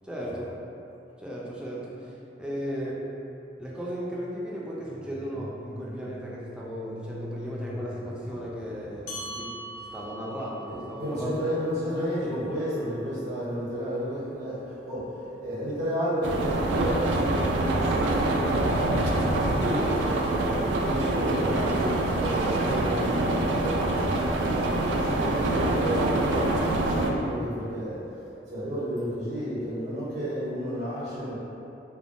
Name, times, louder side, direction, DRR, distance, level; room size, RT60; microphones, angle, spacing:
voice 1, 0.0-0.5 1.2-2.1 2.4-3.0 3.6-9.5 9.8-11.5, equal, 5° right, -5 dB, 0.3 m, -36 dB
sound 1, 4.8-9.6, left 1 dB, 55° left, 1.2 m, -42 dB
sound 2, 9.1-13.9, right 1 dB, 80° left, 0.7 m, -43 dB
voice 2, 10.7-28.0 28.5-31.3, equal, 70° right, -10 dB, 0.8 m, -32 dB
sound 3, 16.2-27.1, right 2 dB, 85° right, 0.3 m, -25 dB
3.4 x 2.1 x 2.5 m, 2.8 s
head